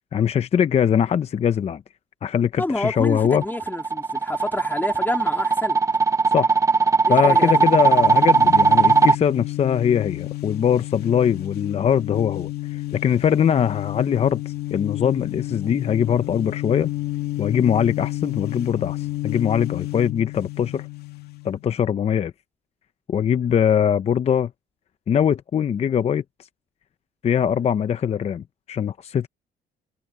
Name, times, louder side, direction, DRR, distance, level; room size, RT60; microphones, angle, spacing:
voice 1, 0.1-1.8 2.2-3.4 6.3-6.5 7.1-16.9 17.4-20.9 21.4-22.3 23.1-24.5 25.1-26.2 27.2-29.3, left 8 dB, 40° left, 0.7 m, -22 dB
voice 2, 2.6-5.8 7.1-7.7, left 2 dB, 10° left, 3.1 m, -28 dB
sound 1, 3.0-9.2, right 4 dB, 20° right, 1.4 m, -18 dB
sound 2, 7.1-21.7, left 18 dB, 70° left, 2.5 m, -31 dB
cardioid pair, 110°, 17 cm